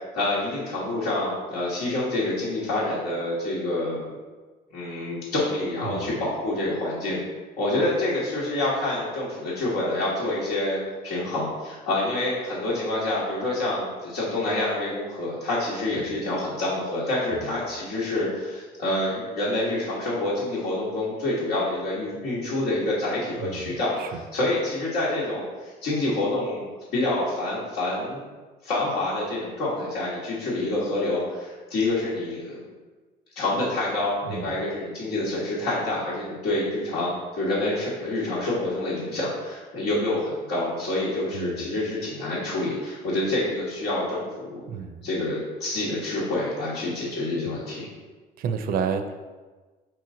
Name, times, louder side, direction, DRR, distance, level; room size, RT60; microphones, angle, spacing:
voice 1, 0.1-4.1 4.7-7.2 7.6-10.8 11.0-23.9 24.3-26.6 26.9-28.2 28.6-32.6 33.3-44.6 45.0-47.9, left 2 dB, 85° left, -9 dB, 1.3 m, -27 dB
voice 2, 5.8-6.3 16.0-16.1 17.3-17.5 23.4-24.2 34.2-34.6 41.3-41.7 44.7-45.1 47.4-47.6 48.4-49.3, right 6 dB, 60° right, 8 dB, 0.4 m, -32 dB
4.6 x 3.0 x 3.7 m, 1.3 s
cardioid pair, 110°, 17 cm